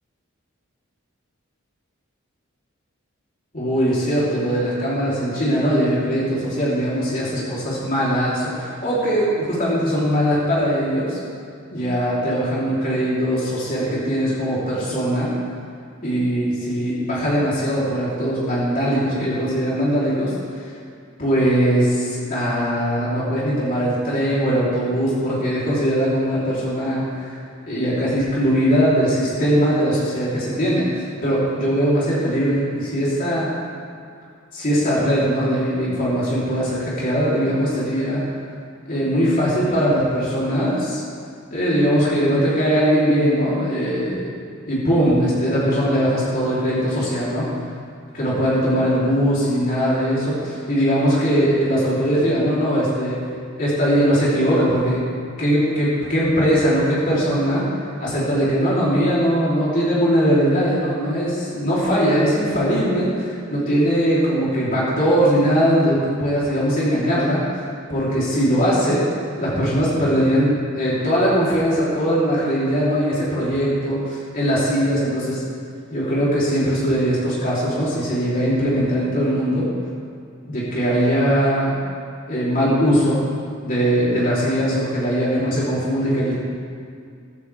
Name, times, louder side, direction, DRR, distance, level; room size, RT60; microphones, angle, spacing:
voice 1, 3.5-11.2 11.7-15.3 16.0-20.7 21.2-27.4 27.7-33.5 34.5-38.3 38.9-41.0 41.5-44.3 44.7-47.5 48.1-53.2 53.6-55.0 55.4-57.6 58.0-67.4 67.9-69.1 69.3-75.4 75.9-79.7 80.5-81.7 82.3-83.2 83.6-86.3, equal, 45° left, -8 dB, 3.7 m, -20 dB
15.5 x 15.0 x 3.6 m, 2.3 s
head